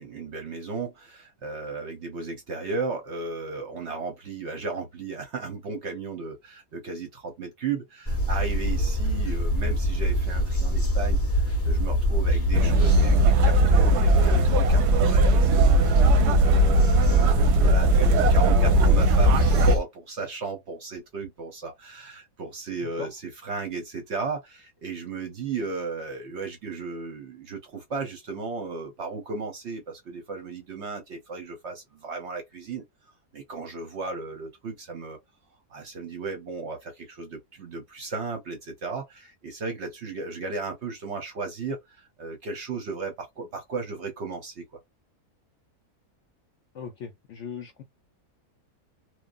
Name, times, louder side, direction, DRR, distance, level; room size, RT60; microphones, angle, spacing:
voice 1, 0.0-32.8 33.3-35.2 35.7-44.8, right 4 dB, 60° right, 0.8 m, -35 dB
sound 1, 8.1-19.8, equal, 15° left, 0.5 m, -24 dB
sound 2, 12.5-19.8, right 1 dB, 90° right, 1.2 m, -20 dB
voice 2, 46.7-47.8, left 6 dB, 70° left, 0.7 m, -38 dB
3.1 x 2.1 x 2.4 m
omnidirectional pair, 1.7 m